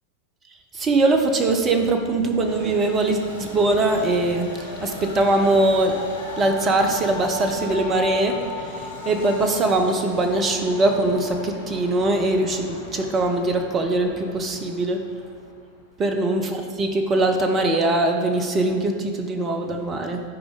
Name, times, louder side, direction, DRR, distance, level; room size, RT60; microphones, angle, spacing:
voice 1, 0.7-6.0 6.4-15.0 16.0-20.2, right 2 dB, 25° right, 5 dB, 0.7 m, -22 dB
Train, 2.3-15.8, left 1 dB, 75° left, 1.3 m, -37 dB
11.5 x 4.9 x 4.0 m, 2.1 s
figure-of-eight pair, 90°, 0 cm